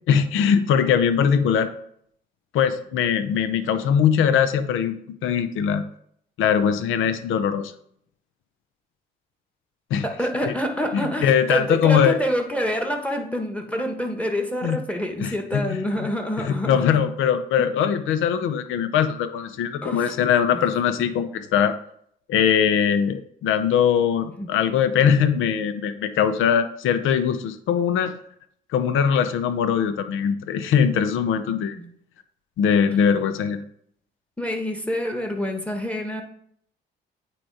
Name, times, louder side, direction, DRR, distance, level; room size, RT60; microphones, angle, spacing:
voice 1, 0.1-1.7 2.5-5.8 6.4-7.7 9.9-10.0 10.4-10.5 10.9-12.2 14.6-14.8 15.2-16.1 16.4-21.7 22.3-28.1 28.7-31.8 32.6-33.6, left 8 dB, 85° left, 10 dB, 0.7 m, -21 dB
voice 2, 10.0-17.0 19.8-20.1 20.5-20.6 24.4-24.5 31.7-31.9 34.4-36.2, equal, 5° left, 3 dB, 1.4 m, -27 dB
8.8 x 3.1 x 4.8 m, 0.67 s
cardioid pair, 90°, 20 cm